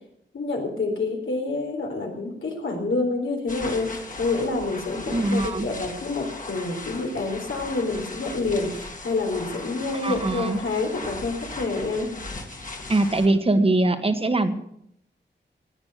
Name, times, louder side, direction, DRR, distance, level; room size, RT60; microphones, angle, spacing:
voice 1, 0.3-12.1, left 3 dB, 85° left, 1 dB, 3.8 m, -28 dB
sound 1, 3.5-13.3, left 2 dB, 45° left, 2.1 m, -38 dB
voice 2, 5.1-5.7 10.0-10.6 12.9-14.5, right 2 dB, 30° right, 9 dB, 1.3 m, -22 dB
17.0 x 9.4 x 6.5 m, 0.74 s
wide cardioid pair, 105°, 20 cm